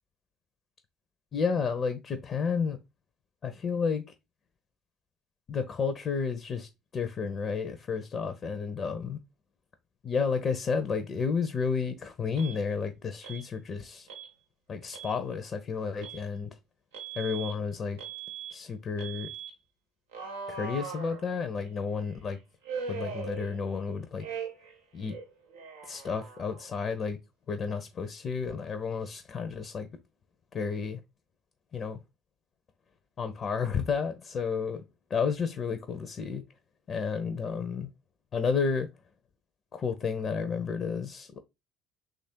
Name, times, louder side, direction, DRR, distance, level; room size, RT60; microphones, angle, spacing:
voice 1, 1.3-2.8 3.4-4.0 5.5-9.2 10.0-14.1 14.7-16.5 17.2-18.0 18.5-19.3 20.5-22.4 22.9-24.2 24.9-25.1 25.9-27.2 27.5-29.9 30.5-31.0 31.7-32.0 33.2-34.8 35.1-36.4 36.9-37.9 38.3-38.9 39.7-41.4, left 5 dB, 40° left, 0.6 m, -31 dB
Alarm, 12.4-12.6 13.2-13.5 14.1-14.3 14.8-15.2 16.0-16.2 16.9-17.5 18.0-18.5 19.0-19.5 20.1-21.7 22.6-23.8 24.2-24.7 25.0-26.7, right 6 dB, 80° right, 0.7 m, -40 dB
3.1 x 2.5 x 4.3 m
hypercardioid pair, 60°, 0 cm